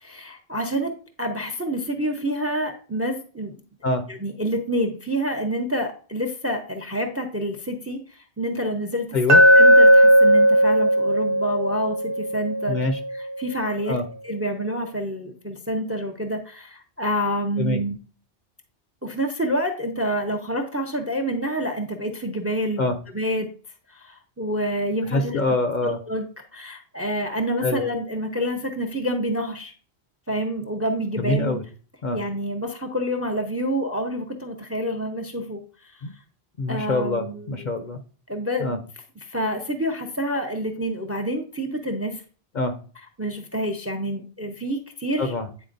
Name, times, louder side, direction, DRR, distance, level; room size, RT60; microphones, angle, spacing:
voice 1, 0.0-3.5 4.1-9.2 9.5-12.9 13.4-14.0 14.2-18.0 19.0-23.5 23.9-25.4 25.8-26.2 26.5-29.7 30.3-31.6 32.1-36.0 36.7-37.5 38.3-38.8 39.2-42.2 43.2-45.3, equal, 20° right, 5 dB, 0.5 m, -28 dB
Glass, 9.3-13.4, equal, 60° right, 0.9 m, -16 dB
voice 2, 12.7-13.0 13.9-14.0 17.6-17.8 22.8-23.0 25.1-26.0 27.6-27.8 31.2-31.6 32.0-32.2 36.0-36.1 36.6-38.0 38.6-38.8 42.5-42.7 45.2-45.7, left 2 dB, 55° left, 7 dB, 0.6 m, -25 dB
8.9 x 4.2 x 2.6 m, 0.40 s
omnidirectional pair, 1.1 m